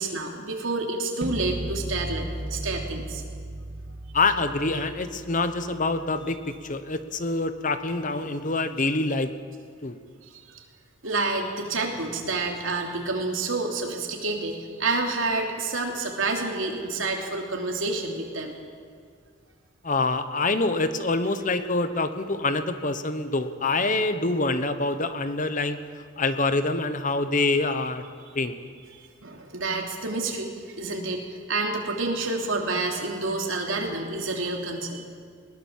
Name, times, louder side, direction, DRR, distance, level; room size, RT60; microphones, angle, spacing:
voice 1, 0.0-3.2 6.3-6.4 8.2-8.4 10.3-10.6 11.0-18.5 28.9-35.0, right 3 dB, 70° right, 1 dB, 3.1 m, -29 dB
sound 1, 1.2-7.2, right 1 dB, 30° right, 1.6 m, -36 dB
voice 2, 4.1-9.3 9.8-10.0 19.8-28.0 28.3-28.6, left 3 dB, 40° left, 10 dB, 1.1 m, -26 dB
21.0 x 19.0 x 7.4 m, 2.1 s
head